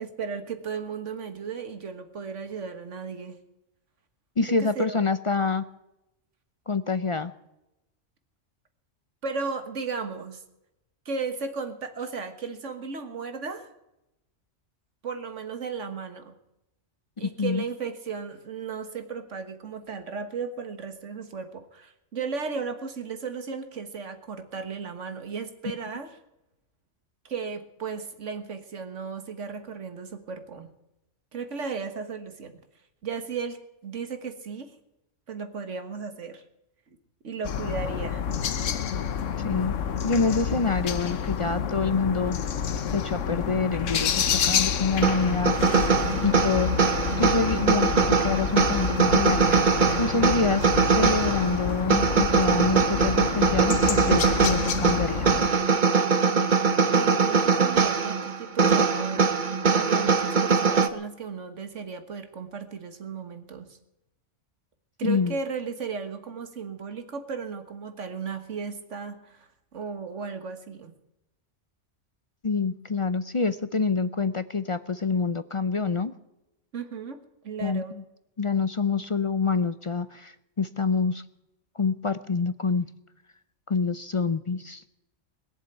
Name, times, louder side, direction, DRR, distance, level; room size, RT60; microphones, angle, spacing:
voice 1, 0.0-3.4 4.6-5.0 9.2-10.4 11.1-13.7 15.0-16.3 17.2-26.2 27.3-30.7 31.3-32.6 33.0-34.7 35.3-36.4 37.2-38.2 56.9-59.3 59.7-63.7 65.0-70.9 76.7-77.2 77.4-77.9, right 5 dB, 75° right, 8 dB, 1.8 m, -35 dB
voice 2, 4.4-5.6 6.7-7.3 17.4-17.6 39.4-39.7 40.0-42.4 42.9-45.5 46.2-49.4 50.0-55.3 65.0-65.4 72.4-76.1 77.6-78.0 78.4-81.2 81.8-82.9 83.7-84.8, left 4 dB, 40° left, 13 dB, 0.4 m, -26 dB
sound 1, 37.4-55.5, left 8 dB, 85° left, 1.3 m, -29 dB
sound 2, 45.0-60.9, right 5 dB, 45° right, 1.0 m, -22 dB
21.0 x 7.4 x 9.2 m, 0.90 s
omnidirectional pair, 1.3 m